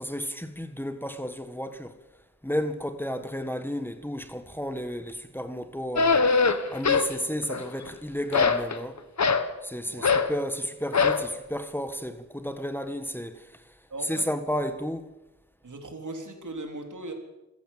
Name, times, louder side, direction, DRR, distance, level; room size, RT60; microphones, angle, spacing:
voice 1, 0.0-1.9 2.4-6.4 6.7-9.0 9.6-13.5 14.0-15.1, equal, 5° left, 1.6 m, -32 dB
sound 1, 6.0-7.1 7.4-7.9 8.3-9.5 10.0-10.3 10.9-11.3, left 4 dB, 65° left, 1.5 m, -22 dB
voice 2, 9.8-10.2 13.9-14.3 15.6-17.1, right 2 dB, 80° right, 3.8 m, -38 dB
26.5 x 14.5 x 7.5 m
wide cardioid pair, 70°, 30 cm